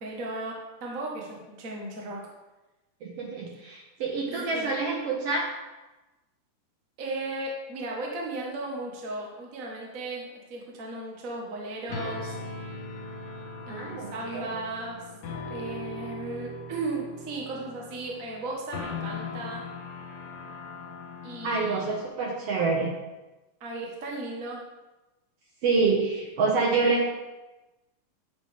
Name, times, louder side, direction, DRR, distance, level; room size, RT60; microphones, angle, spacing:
voice 1, 0.0-2.2 4.3-4.8 7.0-12.3 13.7-15.0 15.5-19.6 21.2-22.0 23.6-24.6, right 2 dB, 45° right, -2 dB, 1.1 m, -36 dB
voice 2, 3.0-5.5 13.7-14.6 21.4-22.9 25.6-27.1, right 4 dB, 60° right, -2 dB, 1.8 m, -27 dB
sound 1, 11.9-22.1, left 3 dB, 85° left, 2.5 m, -39 dB
10.0 x 6.2 x 3.6 m, 1.1 s
omnidirectional pair, 3.8 m